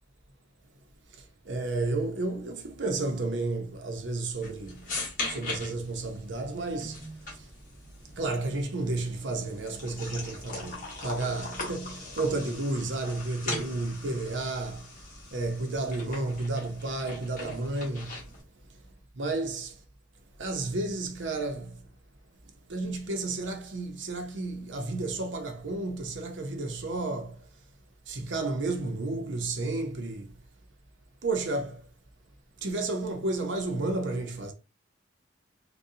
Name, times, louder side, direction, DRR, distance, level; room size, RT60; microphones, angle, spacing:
voice 1, 1.1-4.9 5.3-7.0 7.3-7.5 8.1-15.0 15.3-18.2 19.2-19.8 20.4-21.8 22.7-27.5 28.1-30.3 31.2-31.9 32.6-34.5, right 2 dB, 85° right, 0.7 m, -32 dB
sound 1, 4.4-18.4, left 2 dB, 45° left, 1.3 m, -40 dB
3.9 x 2.3 x 2.7 m
head